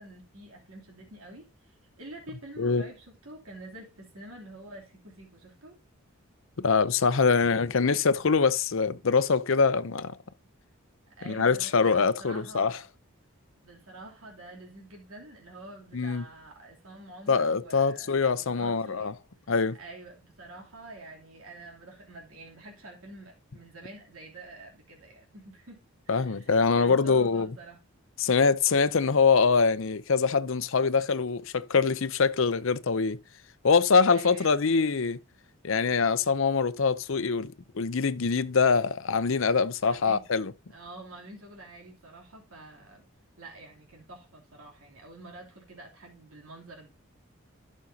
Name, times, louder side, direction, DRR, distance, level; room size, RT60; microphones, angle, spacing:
voice 1, 0.0-5.8 11.2-12.9 13.6-19.1 19.7-27.8 34.1-34.9 39.8-40.2 40.7-43.1 43.4-46.9, right 2 dB, 75° right, 3.1 m, -47 dB
voice 2, 6.6-10.2 11.3-12.7 15.9-16.2 17.3-19.1 19.5-19.8 26.1-27.5 28.2-33.2 33.6-35.2 35.6-40.5, left 5 dB, 65° left, 0.6 m, -24 dB
15.5 x 6.3 x 2.8 m
head